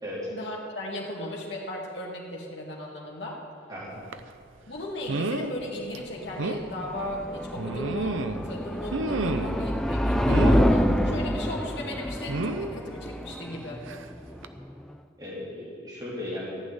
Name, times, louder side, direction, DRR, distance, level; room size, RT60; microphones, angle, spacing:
voice 1, 0.3-3.4 4.7-13.9, left 1 dB, 60° left, -2 dB, 2.2 m, -36 dB
voice 2, 3.7-4.0 15.2-16.6, left 1 dB, 20° right, -7 dB, 3.6 m, -36 dB
sound 1, 4.1-4.3 5.1-5.5 5.9-6.0 6.4-6.6 7.6-8.5 8.9-9.6 10.3-10.7 12.3-12.7 13.9-14.1 14.4-14.5, right 2 dB, 85° right, 0.7 m, -30 dB
sound 2, 6.0-14.9, equal, ahead, 0.4 m, -27 dB
14.5 x 6.4 x 9.6 m, 2.3 s
head